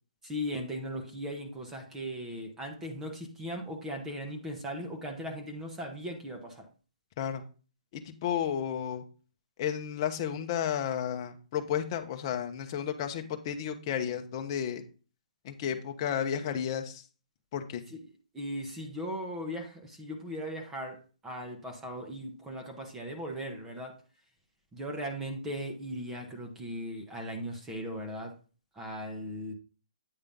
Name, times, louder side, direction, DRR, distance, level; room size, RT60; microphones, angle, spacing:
voice 1, 0.2-6.7 17.9-18.0 18.3-23.9 24.7-28.3 28.7-29.5, equal, 10° right, 2 dB, 1.0 m, -38 dB
voice 2, 7.9-9.0 9.6-14.8 15.4-17.0 17.5-17.8, left 9 dB, 30° left, 6 dB, 0.9 m, -32 dB
8.9 x 3.2 x 5.4 m, 0.36 s
hypercardioid pair, 160°, 4 cm